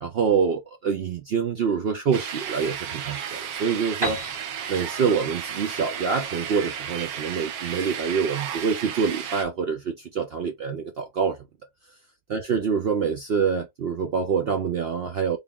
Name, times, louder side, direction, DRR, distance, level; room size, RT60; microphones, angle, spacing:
voice 1, 0.0-4.2 4.7-11.4 12.3-15.4, right 6 dB, 65° right, 0.6 m, -26 dB
sound 1, 2.1-9.4, right 8 dB, 80° right, 1.2 m, -33 dB
Piano, 4.0-7.7, right 1 dB, 20° right, 0.7 m, -36 dB
3.6 x 2.3 x 3.6 m
omnidirectional pair, 1.6 m